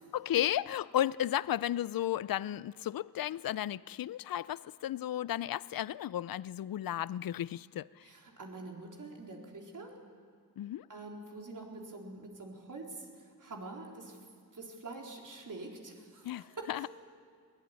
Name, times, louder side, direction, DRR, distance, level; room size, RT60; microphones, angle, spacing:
voice 1, 0.1-8.0 10.6-10.9 16.2-16.9, left 12 dB, 60° left, 0.5 m, -34 dB
voice 2, 8.0-9.9 10.9-14.2 14.5-16.7, right 2 dB, 50° right, 4.1 m, -46 dB
22.0 x 19.0 x 9.6 m
wide cardioid pair, 105°, 39 cm